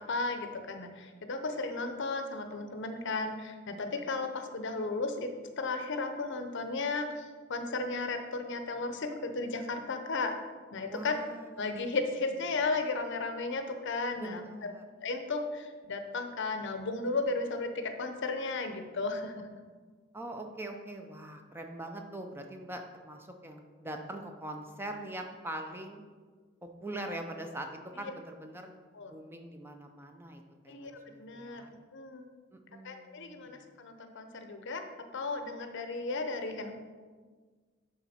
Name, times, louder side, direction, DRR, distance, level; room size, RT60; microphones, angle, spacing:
voice 1, 0.0-10.3 10.7-11.2 11.6-14.4 15.0-19.3 28.9-29.2 30.7-30.9 31.2-31.6 31.9-32.3 32.8-34.8 35.1-36.7, left 3 dB, 60° left, 7 dB, 0.7 m, -34 dB
voice 2, 10.9-11.6 14.1-14.8 20.1-26.0 26.6-27.7 28.0-28.8 29.0-31.7 32.5-33.7, right 1 dB, 10° right, 4 dB, 0.5 m, -42 dB
10.5 x 3.9 x 4.2 m, 1.5 s
head